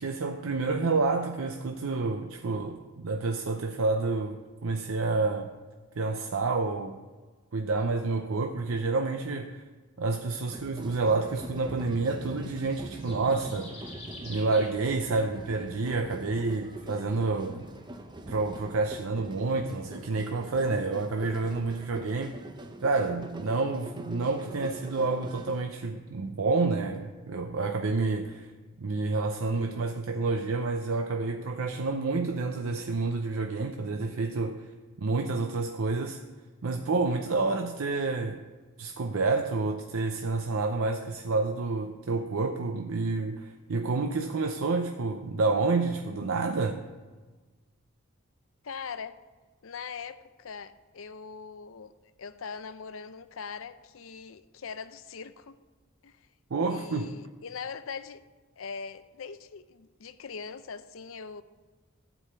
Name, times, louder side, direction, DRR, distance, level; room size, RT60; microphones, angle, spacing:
voice 1, 0.0-5.5 6.0-7.0 7.5-9.5 10.0-13.9 14.2-17.7 18.3-22.3 22.8-28.5 28.8-34.7 35.0-36.2 36.6-38.4 38.8-46.8 56.5-57.1, right 3 dB, 85° right, 0.6 m, -29 dB
sound 1, 10.5-25.6, right 1 dB, 20° right, 0.6 m, -43 dB
sound 2, 12.6-18.0, left 1 dB, 30° left, 3.4 m, -50 dB
voice 2, 48.6-49.2 49.6-51.9 52.2-55.6 56.0-56.2 56.7-58.2 58.6-61.4, left 5 dB, 75° left, 0.6 m, -41 dB
12.0 x 4.9 x 7.9 m
head